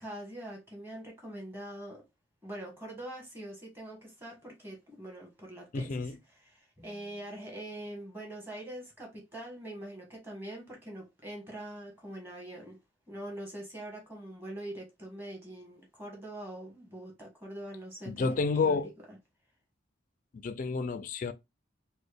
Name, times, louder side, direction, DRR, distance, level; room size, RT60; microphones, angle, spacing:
voice 1, 0.0-2.0 2.4-6.1 6.5-12.8 13.1-18.8, right 1 dB, 10° right, 1.3 m, -43 dB
voice 2, 5.7-6.2 18.1-18.9 20.3-21.3, left 4 dB, 40° left, 0.3 m, -30 dB
4.1 x 2.1 x 3.3 m
head